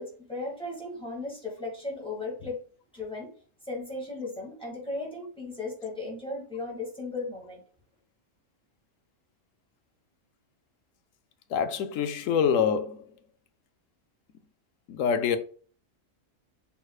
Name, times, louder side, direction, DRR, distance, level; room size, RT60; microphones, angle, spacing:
voice 1, 0.0-2.6 2.9-3.3 3.6-7.6, left 2 dB, 5° left, 2.0 m, -36 dB
voice 2, 11.5-13.1 14.9-15.4, left 7 dB, 80° left, 1.0 m, -25 dB
6.2 x 3.4 x 2.4 m
omnidirectional pair, 1.4 m